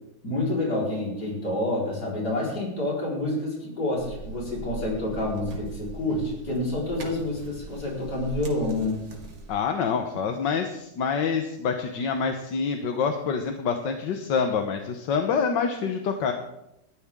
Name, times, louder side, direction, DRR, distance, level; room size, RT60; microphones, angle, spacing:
voice 1, 0.2-9.0, left 1 dB, 45° left, -3 dB, 5.0 m, -28 dB
sound 1, 4.0-9.6, right 2 dB, 65° right, 2.8 m, -40 dB
voice 2, 9.5-16.3, left 6 dB, 60° left, 5 dB, 1.6 m, -26 dB
20.0 x 13.0 x 3.7 m, 0.85 s
omnidirectional pair, 2.4 m